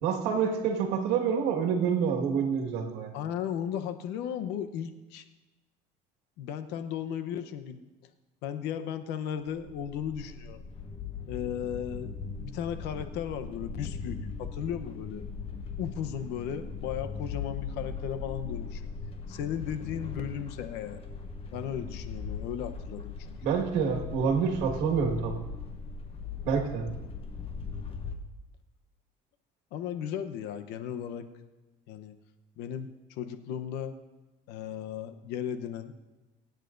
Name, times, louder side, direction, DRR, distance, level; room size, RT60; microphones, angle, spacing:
voice 1, 0.0-3.1 23.4-25.4 26.4-26.9, right 6 dB, 85° right, 2 dB, 1.8 m, -27 dB
voice 2, 3.1-5.2 6.4-7.8 8.4-10.6 11.3-12.1 12.4-15.2 15.8-18.8 19.3-21.0 21.5-23.0 29.7-31.3 31.9-32.1 32.6-32.9 33.2-33.9 34.5-35.9, left 9 dB, 80° left, 9 dB, 0.9 m, -35 dB
sound 1, 9.6-28.2, left 5 dB, 35° left, 1.0 m, -39 dB
24.5 x 9.1 x 2.6 m, 1.1 s
cardioid pair, 130°, 17 cm